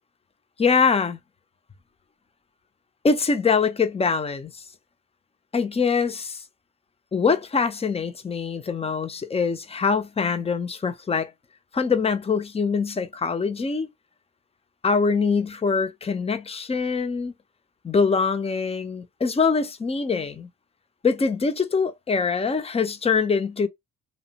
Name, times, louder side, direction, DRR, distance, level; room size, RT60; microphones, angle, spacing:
voice 1, 0.6-1.2 3.0-4.5 5.5-6.4 7.1-11.3 11.7-13.9 14.8-17.3 17.8-20.5 21.0-23.7, left 5 dB, 20° left, 0.5 m, -23 dB
2.8 x 2.0 x 2.7 m
hypercardioid pair, 50°, 33 cm